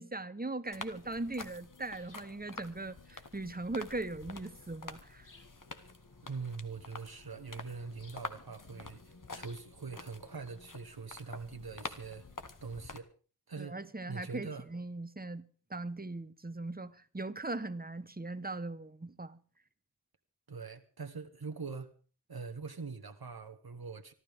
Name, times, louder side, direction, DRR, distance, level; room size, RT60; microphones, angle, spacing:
voice 1, 0.0-5.3 13.6-15.4 15.7-19.4, right 2 dB, 25° right, 1.1 m, -39 dB
sound 1, 0.7-13.0, left 3 dB, 55° left, 1.4 m, -48 dB
voice 2, 6.2-12.3 12.6-13.1 13.5-13.8 14.1-14.7 20.5-22.0 22.3-24.1, right 4 dB, 70° right, 1.3 m, -43 dB
26.0 x 12.5 x 3.6 m
wide cardioid pair, 45°, 38 cm